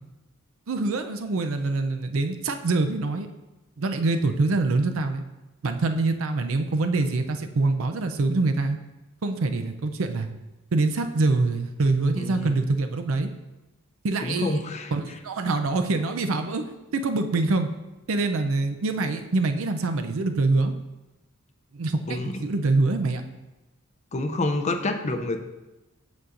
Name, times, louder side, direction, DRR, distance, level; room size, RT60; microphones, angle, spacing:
voice 1, 0.7-3.3 3.8-5.2 5.6-8.8 9.2-10.3 10.7-13.3 14.0-14.6 14.9-16.6 16.9-17.7 18.1-20.7 21.7-23.2, right 3 dB, 65° right, 7 dB, 0.5 m, -25 dB
voice 2, 12.2-12.5 14.2-14.9 22.1-22.4 24.1-25.4, left 2 dB, 30° left, 6 dB, 0.5 m, -28 dB
8.2 x 6.3 x 2.5 m, 1.0 s
head